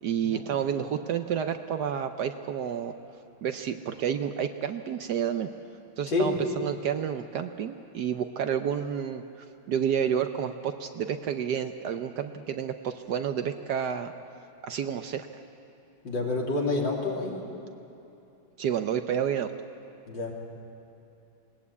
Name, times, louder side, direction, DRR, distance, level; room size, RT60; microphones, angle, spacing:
voice 1, 0.0-2.9 3.4-5.5 6.0-9.2 9.7-14.1 14.6-15.3 18.6-19.5, right 8 dB, 65° right, 8 dB, 1.2 m, -30 dB
voice 2, 6.1-6.4 16.0-17.4 20.1-20.3, left 2 dB, 65° left, -2 dB, 3.7 m, -28 dB
20.5 x 19.0 x 8.4 m, 2.8 s
omnidirectional pair, 2.2 m